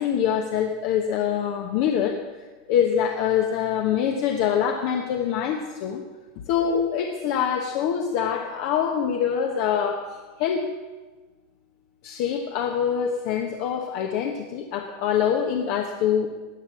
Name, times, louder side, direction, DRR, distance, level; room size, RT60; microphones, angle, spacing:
voice 1, 0.0-6.0 6.5-10.0 10.4-10.7 12.0-16.3, left 8 dB, 55° left, 3 dB, 1.2 m, -24 dB
15.5 x 10.0 x 6.1 m, 1.3 s
figure-of-eight pair, 85°, 0 cm